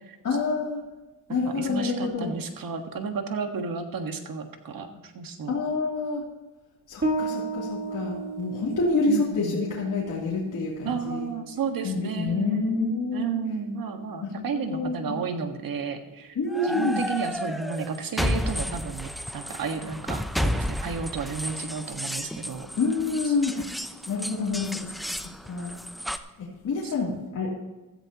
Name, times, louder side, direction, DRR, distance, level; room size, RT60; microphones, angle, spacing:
voice 1, 0.2-0.8 1.3-2.3 5.5-6.2 6.9-11.3 11.8-13.3 14.2-15.1 16.3-17.0 22.8-23.5 24.1-25.8 26.4-27.6, left 3 dB, 55° left, -6 dB, 3.2 m, -28 dB
voice 2, 1.3-5.6 9.1-9.7 10.8-16.4 16.6-22.7 26.8-26.9, right 5 dB, 60° right, 6 dB, 1.7 m, -32 dB
Bass guitar, 7.0-14.2, right 2 dB, 30° right, 3.1 m, -35 dB
sound 1, 16.5-26.2, equal, ahead, 0.7 m, -32 dB
16.0 x 13.5 x 3.0 m, 1.1 s
cardioid pair, 85°, 38 cm